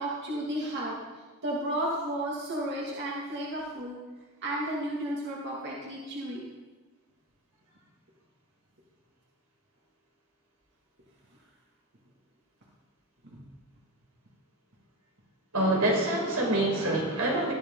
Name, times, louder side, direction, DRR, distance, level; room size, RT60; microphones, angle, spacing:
voice 1, 0.0-4.0 4.4-6.4 13.2-13.4, right 1 dB, 55° right, -4 dB, 2.6 m, -33 dB
voice 2, 15.5-17.5, right 1 dB, 85° right, -2 dB, 5.2 m, -26 dB
20.0 x 13.0 x 4.1 m, 1.3 s
head